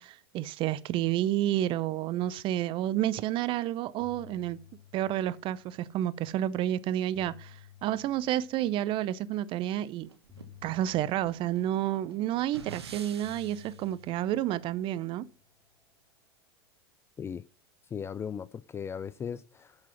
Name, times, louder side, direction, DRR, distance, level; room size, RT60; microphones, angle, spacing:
voice 1, 0.0-4.6 4.9-10.1 10.6-15.3, right 12 dB, 40° right, 0.6 m, -30 dB
sound 1, 3.3-3.6 3.8-6.2 6.8-9.3 10.3-12.7 13.2-15.8, left 11 dB, 5° right, 4.0 m, -55 dB
sound 2, 10.0-13.9, right 6 dB, 85° right, 1.1 m, -48 dB
voice 2, 17.9-19.8, left 7 dB, 20° left, 0.4 m, -37 dB
7.5 x 7.4 x 5.7 m
hypercardioid pair, 90°, 13 cm